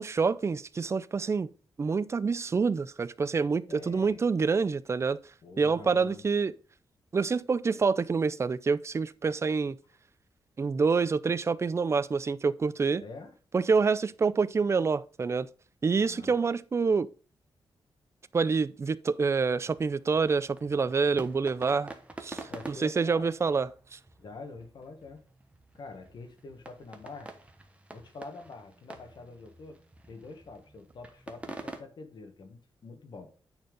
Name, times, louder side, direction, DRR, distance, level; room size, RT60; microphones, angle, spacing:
voice 1, 0.0-1.5 1.8-5.2 5.6-6.5 7.1-9.8 10.6-13.0 13.5-15.5 15.8-17.1 18.3-21.9 22.2-24.0, right 5 dB, 30° right, 0.4 m, -27 dB
voice 2, 3.7-4.2 5.4-6.2 13.0-13.3 15.9-16.3 22.5-23.3 24.2-25.2 25.7-27.3 27.9-29.8 30.1-33.3, left 3 dB, 60° left, 1.5 m, -46 dB
sound 1, 19.3-31.8, right 2 dB, 15° right, 1.1 m, -48 dB
9.5 x 4.5 x 5.1 m
wide cardioid pair, 125°, 9 cm